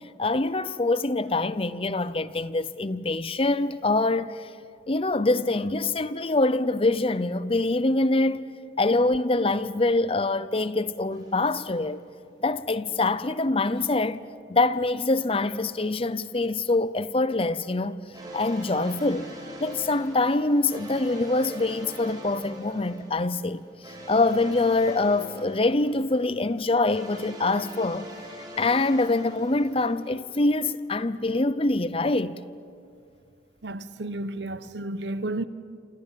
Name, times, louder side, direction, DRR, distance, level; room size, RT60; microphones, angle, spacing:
voice 1, 0.2-4.3 4.9-8.4 8.8-12.0 12.4-14.2 14.5-18.0 18.3-19.3 19.6-23.6 24.1-28.1 28.6-32.4, left 2 dB, 30° left, 0.7 m, -24 dB
sound 1, 11.1-12.3 18.1-30.1, equal, 20° right, 5.9 m, -43 dB
voice 2, 33.6-35.5, right 2 dB, 75° right, 1.1 m, -32 dB
28.5 x 27.0 x 7.5 m
head